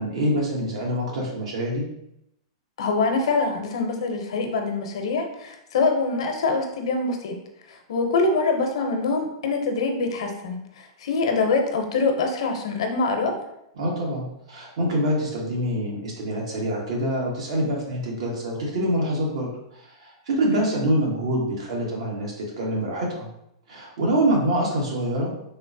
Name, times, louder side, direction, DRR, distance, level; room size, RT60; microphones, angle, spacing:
voice 1, 0.0-1.9 13.8-19.5 20.0-23.3 23.7-25.4, right 1 dB, 70° right, -1 dB, 1.0 m, -25 dB
voice 2, 2.8-7.4 7.7-13.3 20.5-20.8, left 3 dB, 75° left, 4 dB, 0.6 m, -24 dB
3.6 x 2.0 x 2.6 m, 0.81 s
hypercardioid pair, 145°, 3 cm